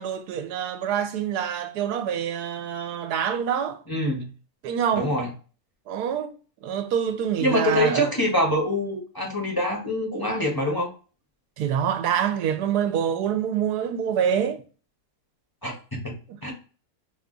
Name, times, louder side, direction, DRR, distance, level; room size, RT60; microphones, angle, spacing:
voice 1, 0.0-3.8 4.6-5.1 5.9-6.3 6.6-8.1 11.6-14.6 16.3-16.5, right 8 dB, 85° right, 1.1 m, -26 dB
voice 2, 3.9-4.3 4.9-5.3 7.4-10.9 15.6-16.1 16.4-16.5, left 1 dB, 20° left, 0.7 m, -25 dB
3.0 x 2.3 x 3.6 m
omnidirectional pair, 1.6 m